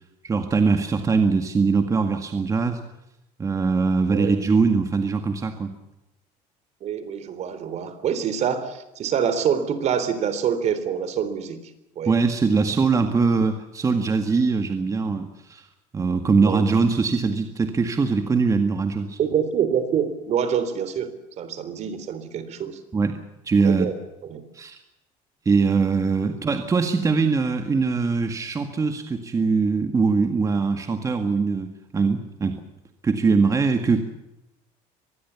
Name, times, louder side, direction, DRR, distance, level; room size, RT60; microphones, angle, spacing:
voice 1, 0.2-2.8 3.4-5.7 12.1-15.7 15.9-19.2 22.9-23.9 24.5-24.8 25.5-32.6 33.0-34.0, right 4 dB, 20° right, 7 dB, 1.9 m, -22 dB
voice 2, 6.8-11.6 12.0-12.1 12.8-13.0 16.4-16.6 19.2-22.8 23.6-23.9 24.3-24.4, right 8 dB, 45° right, 13 dB, 3.7 m, -26 dB
25.0 x 20.5 x 7.2 m, 0.90 s
cardioid pair, 140°, 16 cm